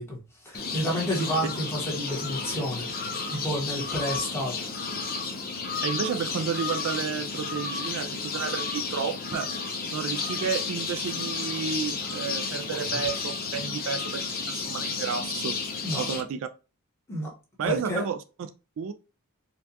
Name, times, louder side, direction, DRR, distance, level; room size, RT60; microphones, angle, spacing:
voice 1, 0.0-2.9 3.3-4.5 12.7-12.8 15.8-16.0 17.1-17.3 17.6-18.0, equal, 10° left, 1.3 m, -30 dB
sound 1, 0.5-16.2, left 4 dB, 40° left, 0.7 m, -32 dB
voice 2, 5.8-9.5 9.9-15.6 16.0-16.5 17.6-18.2 18.8-18.9, right 6 dB, 60° right, 0.3 m, -31 dB
4.4 x 2.3 x 2.7 m
head